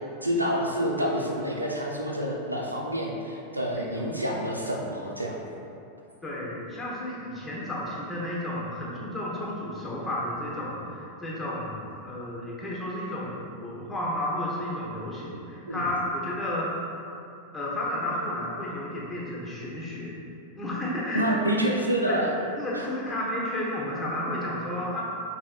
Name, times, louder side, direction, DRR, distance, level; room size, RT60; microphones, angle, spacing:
voice 1, 0.2-5.4 15.7-15.8 21.1-22.3 22.7-22.8, equal, 85° right, -1 dB, 0.5 m, -28 dB
voice 2, 3.7-4.2 6.2-13.4 13.6-16.8 17.5-20.2 20.5-21.4 22.0-25.0, left 1 dB, 10° left, -5 dB, 0.9 m, -32 dB
5.4 x 2.8 x 2.4 m, 2.7 s
figure-of-eight pair, 90°, 0 cm